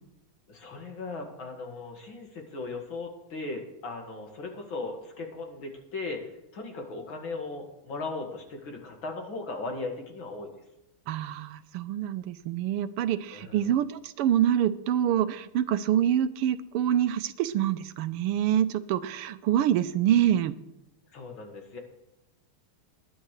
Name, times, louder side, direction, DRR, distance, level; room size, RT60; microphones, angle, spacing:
voice 1, 0.5-6.2 6.5-10.5 13.3-13.7 21.1-21.8, left 3 dB, 65° left, 2 dB, 2.7 m, -37 dB
voice 2, 11.1-20.5, right 10 dB, 90° right, 13 dB, 1.6 m, -26 dB
20.5 x 10.0 x 3.3 m, 0.91 s
omnidirectional pair, 2.4 m